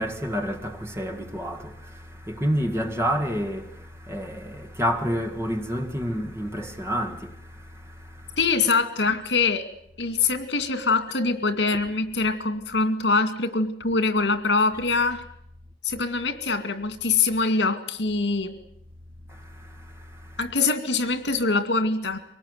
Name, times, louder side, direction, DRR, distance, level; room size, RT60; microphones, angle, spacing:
voice 1, 0.0-8.5 19.3-20.5, equal, 15° right, 1.7 m, -30 dB
voice 2, 8.4-9.7 10.0-15.2 15.8-18.5 20.4-22.2, left 3 dB, 80° left, 2.3 m, -24 dB
24.0 x 19.0 x 9.5 m
head